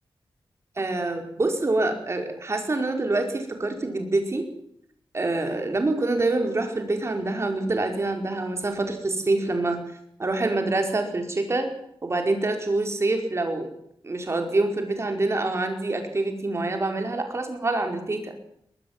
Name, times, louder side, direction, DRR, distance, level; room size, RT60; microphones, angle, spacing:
voice 1, 0.8-4.5 5.1-9.8 10.2-11.7 12.0-13.7 14.0-18.3, right 2 dB, 30° right, 5 dB, 5.1 m, -26 dB
23.0 x 19.0 x 7.6 m, 0.71 s
wide cardioid pair, 150°, 9 cm